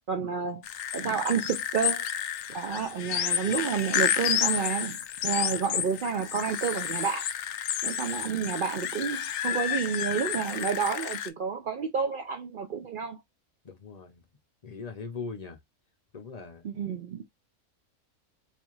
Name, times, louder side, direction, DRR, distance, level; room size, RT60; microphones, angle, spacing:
voice 1, 0.1-0.6 0.9-2.0 2.5-7.3 7.8-13.2 16.6-17.2, right 6 dB, 90° right, 0.4 m, -30 dB
sound 1, 0.6-11.3, left 10 dB, 70° left, 0.9 m, -31 dB
voice 2, 13.6-14.2 14.6-15.6 16.1-16.7, left 4 dB, 50° left, 0.5 m, -40 dB
4.0 x 2.4 x 3.0 m
omnidirectional pair, 1.5 m